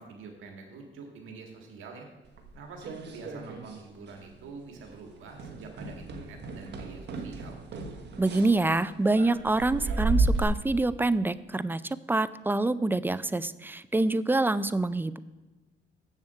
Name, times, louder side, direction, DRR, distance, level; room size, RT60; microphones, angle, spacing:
voice 1, 0.0-2.1 2.5-7.6, right 4 dB, 80° right, 2 dB, 1.7 m, -46 dB
sound 1, 2.4-3.8 4.1-4.5 4.8-4.9 5.4-10.4, right 3 dB, 60° right, 1.4 m, -32 dB
voice 2, 8.2-15.2, right 2 dB, 10° right, 16 dB, 0.4 m, -26 dB
7.8 x 7.2 x 6.6 m, 1.2 s
cardioid pair, 90°, 20 cm